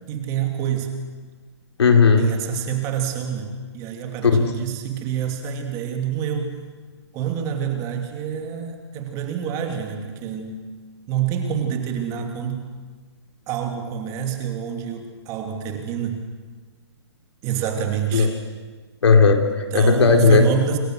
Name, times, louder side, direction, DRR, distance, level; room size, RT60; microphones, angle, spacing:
voice 1, 0.1-1.0 2.2-6.6 7.1-10.7 11.1-12.7 13.5-16.3 17.4-18.3 19.7-20.8, right 8 dB, 20° right, 4 dB, 3.0 m, -27 dB
voice 2, 1.8-2.2 4.2-4.4 18.1-18.3 19.0-20.4, left 5 dB, 75° left, 4 dB, 4.0 m, -15 dB
27.0 x 27.0 x 6.5 m, 1.4 s
hypercardioid pair, 155°, 15 cm